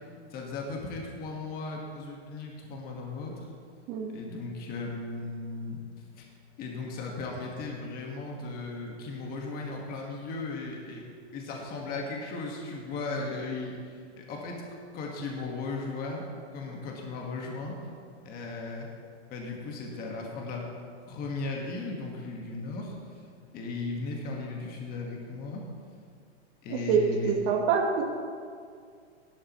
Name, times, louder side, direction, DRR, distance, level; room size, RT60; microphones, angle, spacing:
voice 1, 0.3-3.5 4.1-6.2 6.6-11.0 11.3-14.6 14.9-16.3 16.5-17.8 18.2-18.9 19.3-20.6 21.1-23.0 23.5-25.7 26.6-27.3, left 3 dB, 25° left, 0 dB, 1.7 m, -36 dB
voice 2, 26.7-28.0, right 6 dB, 35° right, 1 dB, 1.5 m, -26 dB
15.5 x 11.5 x 3.1 m, 2.2 s
hypercardioid pair, 150°, 34 cm